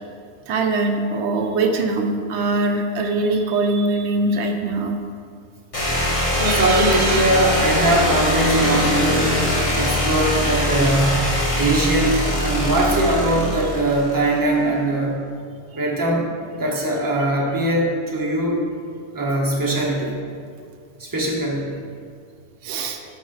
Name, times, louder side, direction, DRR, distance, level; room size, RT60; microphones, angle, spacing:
voice 1, 0.5-5.0 6.4-7.3 22.6-23.0, right 2 dB, 85° right, 4 dB, 0.9 m, -22 dB
sound 1, 5.7-14.5, left 1 dB, 30° left, 1.3 m, -22 dB
voice 2, 6.4-15.2 15.7-16.3 16.6-18.6 19.1-20.2 21.0-21.8, right 1 dB, 20° right, -3 dB, 1.0 m, -21 dB
6.1 x 5.2 x 5.6 m, 2.2 s
omnidirectional pair, 1.1 m